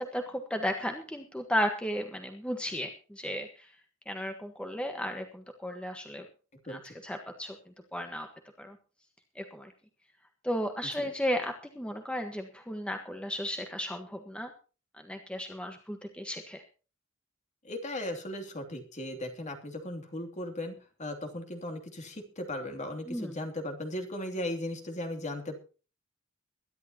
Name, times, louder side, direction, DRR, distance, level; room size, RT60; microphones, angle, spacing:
voice 1, 0.0-3.7 4.1-6.2 6.7-7.6 7.9-8.3 8.6-8.8 9.3-9.7 10.4-14.5 15.1-16.6 23.1-23.3, equal, 5° left, 4 dB, 1.4 m, -34 dB
voice 2, 17.6-25.6, left 1 dB, 35° left, 5 dB, 2.9 m, -37 dB
22.5 x 11.5 x 3.0 m, 0.36 s
head